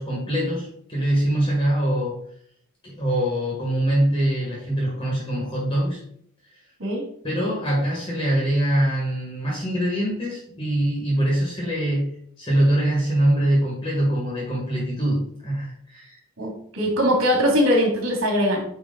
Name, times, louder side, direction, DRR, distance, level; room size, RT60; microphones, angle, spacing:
voice 1, 0.0-2.2 2.8-6.0 7.2-16.2, right 1 dB, 25° left, -4 dB, 1.7 m, -23 dB
voice 2, 16.4-18.6, equal, 75° right, 0 dB, 2.5 m, -21 dB
9.1 x 3.3 x 3.9 m, 0.67 s
head